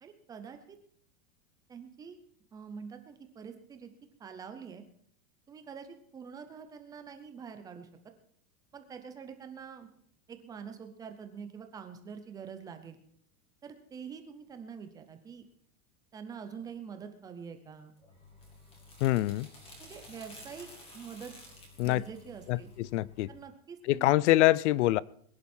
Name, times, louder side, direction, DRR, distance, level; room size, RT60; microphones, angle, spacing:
voice 1, 0.0-0.8 1.7-2.2 2.5-3.9 4.2-4.8 5.5-7.9 8.7-9.9 10.3-13.0 13.6-15.5 16.1-17.9 19.8-20.7 20.9-21.3 21.8-22.7 23.3-24.1, right 6 dB, 10° right, 7 dB, 0.6 m, -45 dB
sound 1, 18.0-23.4, left 1 dB, 15° left, 2.7 m, -52 dB
voice 2, 19.0-19.5 21.8-22.0 22.5-23.3 23.9-25.0, left 17 dB, 55° left, 23 dB, 0.5 m, -25 dB
21.5 x 10.5 x 4.4 m, 0.64 s
supercardioid pair, 180°, 43 cm